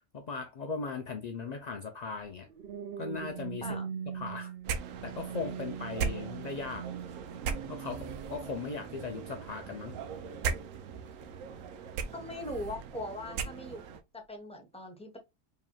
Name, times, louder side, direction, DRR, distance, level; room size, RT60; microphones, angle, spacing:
voice 1, 0.1-2.5 3.0-3.7 4.1-4.5 5.0-6.9 7.7-10.0, left 4 dB, 65° left, 0.4 m, -38 dB
sound 1, 2.2-12.7 13.3-13.6, right 8 dB, 65° right, 0.6 m, -43 dB
sound 2, 4.6-14.0, right 6 dB, 85° right, 1.0 m, -39 dB
voice 2, 12.1-13.8 14.3-15.2, left 1 dB, 5° left, 0.9 m, -40 dB
4.9 x 2.9 x 2.2 m
omnidirectional pair, 1.3 m